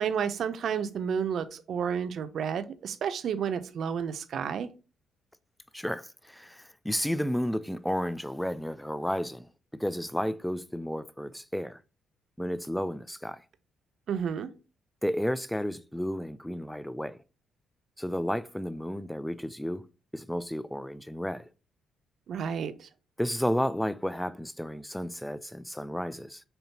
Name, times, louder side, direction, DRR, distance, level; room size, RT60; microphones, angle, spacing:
voice 1, 0.0-4.7 14.1-14.5 22.3-22.9, right 7 dB, 65° right, 0.6 m, -31 dB
voice 2, 5.7-11.8 12.4-13.4 15.0-17.2 18.0-19.9 20.1-21.5 23.2-26.4, equal, 5° left, 0.3 m, -32 dB
6.7 x 2.9 x 2.8 m
cardioid pair, 90°, 0 cm